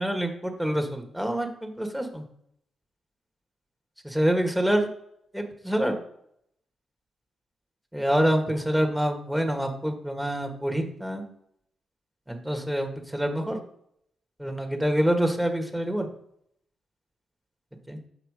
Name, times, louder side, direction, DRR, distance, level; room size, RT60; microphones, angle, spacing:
voice 1, 0.0-2.2 4.0-4.9 5.3-6.0 7.9-11.2 12.3-13.6 14.4-16.1 17.9-18.0, equal, 5° right, 4 dB, 1.6 m, -26 dB
5.9 x 4.5 x 4.9 m, 0.72 s
supercardioid pair, 45°, 0 cm